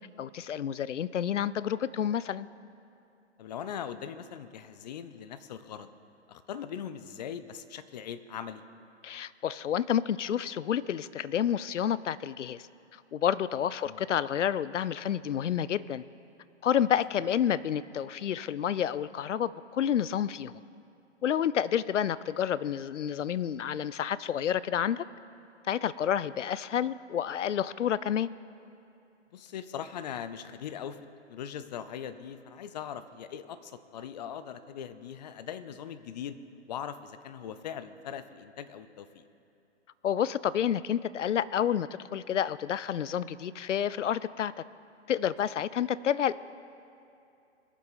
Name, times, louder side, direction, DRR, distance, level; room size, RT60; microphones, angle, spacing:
voice 1, 0.2-2.5 9.0-12.6 13.1-16.0 16.6-20.5 21.2-25.0 25.7-28.3 40.0-44.5 45.1-46.4, left 9 dB, 90° left, 18 dB, 0.5 m, -29 dB
voice 2, 3.4-5.9 6.3-8.6 13.9-14.0 29.3-31.0 31.3-36.4 36.7-39.2, left 8 dB, 35° left, 12 dB, 0.6 m, -40 dB
21.0 x 7.4 x 4.1 m, 2.7 s
hypercardioid pair, 140°, 35 cm